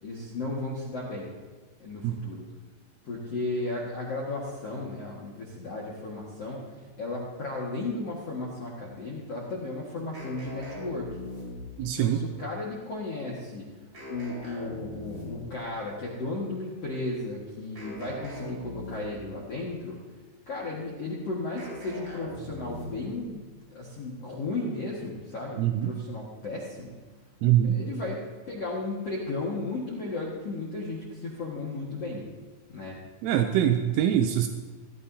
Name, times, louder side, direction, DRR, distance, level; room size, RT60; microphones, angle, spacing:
voice 1, 0.0-1.3 1.8-2.5 3.0-11.2 11.8-13.7 14.1-20.0 20.5-26.9 27.6-32.2 32.7-33.0 33.8-34.1, left 2 dB, 80° left, -5 dB, 1.4 m, -35 dB
sound 1, 10.1-11.9 13.9-15.6 17.7-19.3 21.6-23.2, equal, 20° right, 4.8 m, -41 dB
voice 2, 11.8-12.2 25.6-25.9 27.4-27.8 33.2-34.5, right 11 dB, 85° right, 6 dB, 3.1 m, -23 dB
17.0 x 13.5 x 2.8 m, 1.4 s
omnidirectional pair, 5.8 m